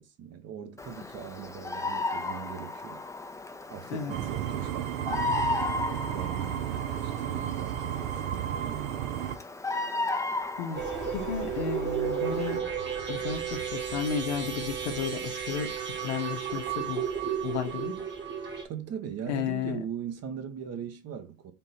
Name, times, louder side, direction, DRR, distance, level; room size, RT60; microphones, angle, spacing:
voice 1, 0.0-3.0 3.7-5.6 6.1-9.2 18.6-21.5, right 8 dB, 50° right, 0.9 m, -40 dB
Bird vocalization bird call bird song, 0.8-12.6, left 3 dB, 10° left, 0.5 m, -35 dB
sound 1, 4.1-9.4, right 11 dB, 65° right, 0.5 m, -33 dB
sound 2, 10.7-18.6, right 7 dB, 35° right, 1.3 m, -33 dB
voice 2, 11.1-12.7 13.1-15.7 16.0-17.0 17.4-18.0 19.3-19.8, left 7 dB, 90° left, 0.7 m, -33 dB
3.6 x 2.7 x 4.2 m
hypercardioid pair, 75°, 33 cm